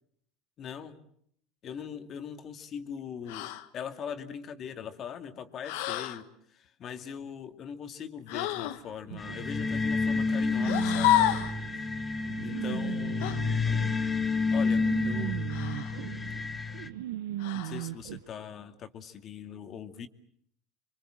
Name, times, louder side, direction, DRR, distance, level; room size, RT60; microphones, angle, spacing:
voice 1, 0.6-1.0 1.6-11.3 12.4-13.8 14.5-15.4 17.5-20.1, left 7 dB, 45° left, 2.4 m, -41 dB
sound 1, 3.3-3.7 5.6-6.2 8.3-8.8 10.6-11.6 13.2-13.4 15.5-16.0 17.4-17.9, left 13 dB, 75° left, 1.7 m, -29 dB
sound 2, 9.1-18.2, right 15 dB, 85° right, 1.1 m, -39 dB
sound 3, 9.2-16.9, left 4 dB, 15° left, 1.6 m, -29 dB
28.0 x 24.0 x 7.7 m
supercardioid pair, 105°, 0 cm